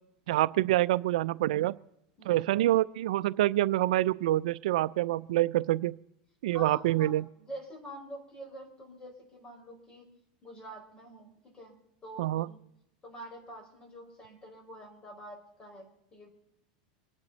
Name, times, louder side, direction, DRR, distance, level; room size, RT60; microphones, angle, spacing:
voice 1, 0.3-1.7 2.3-6.0 6.4-7.2 12.2-12.5, right 15 dB, 85° right, 17 dB, 0.4 m, -26 dB
voice 2, 6.5-10.1 10.4-11.7 12.0-12.6 13.0-16.3, right 1 dB, 20° left, 2 dB, 5.1 m, -46 dB
25.5 x 10.5 x 4.0 m, 0.81 s
supercardioid pair, 135°, 4 cm